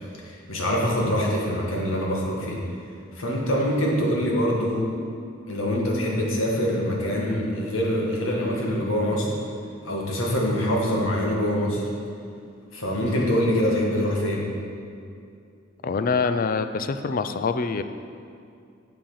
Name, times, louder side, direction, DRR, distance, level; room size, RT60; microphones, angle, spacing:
voice 1, 0.2-2.6 3.2-4.9 5.5-9.3 9.8-11.9 12.7-14.5, equal, 80° left, -2 dB, 1.7 m, -24 dB
voice 2, 15.8-17.8, left 4 dB, 45° left, 10 dB, 0.4 m, -25 dB
7.6 x 7.1 x 5.6 m, 2.4 s
head